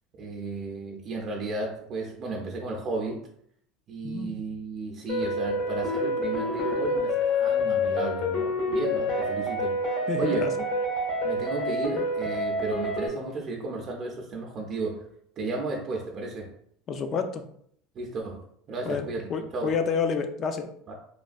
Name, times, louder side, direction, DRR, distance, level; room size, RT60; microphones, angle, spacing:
voice 1, 0.2-3.2 3.9-10.4 11.2-15.1 15.4-16.5 17.9-19.8 20.9-21.0, right 3 dB, 45° right, 0 dB, 0.5 m, -34 dB
voice 2, 4.0-4.5 10.1-10.5 16.9-17.4 18.9-20.7, left 5 dB, 45° left, 7 dB, 0.4 m, -29 dB
sound 1, 5.1-13.1, left 1 dB, 70° left, 1.1 m, -27 dB
3.1 x 2.2 x 2.5 m, 0.66 s
hypercardioid pair, 90°, 0 cm